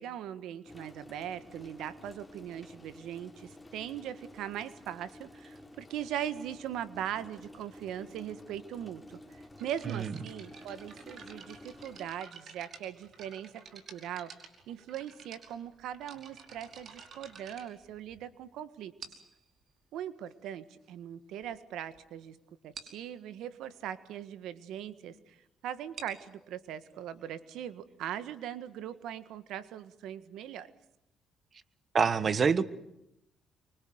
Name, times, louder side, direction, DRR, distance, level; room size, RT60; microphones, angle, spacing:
voice 1, 0.0-14.3 14.7-18.9 19.9-22.4 22.6-25.4 25.6-30.7, right 10 dB, 85° right, 13 dB, 1.6 m, -40 dB
sound 1, 0.6-12.1, left 1 dB, 10° left, 3.6 m, -51 dB
sound 2, 9.6-18.4 19.0-19.4 20.3-20.4 21.0-21.1 21.3-21.5 21.9-22.0 22.2-22.3 22.7-23.0 25.7-29.2, right 5 dB, 60° right, 5.1 m, -51 dB
voice 2, 31.9-32.6, right 6 dB, 45° right, 15 dB, 1.5 m, -26 dB
25.5 x 24.0 x 8.0 m, 0.83 s
cardioid pair, 90°, 0 cm